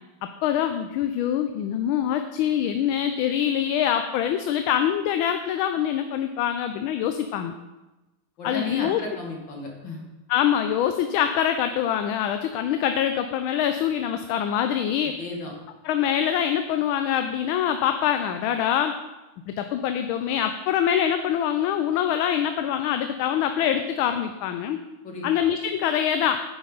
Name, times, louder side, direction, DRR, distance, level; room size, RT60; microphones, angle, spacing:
voice 1, 0.4-7.5 8.4-9.0 10.3-15.2 15.8-19.0 19.5-24.8 25.2-26.4, left 9 dB, 80° left, 7 dB, 1.3 m, -24 dB
voice 2, 8.4-10.0 15.2-15.5 25.0-25.3, left 2 dB, 60° left, -1 dB, 2.5 m, -34 dB
8.9 x 8.7 x 3.9 m, 1.1 s
omnidirectional pair, 2.3 m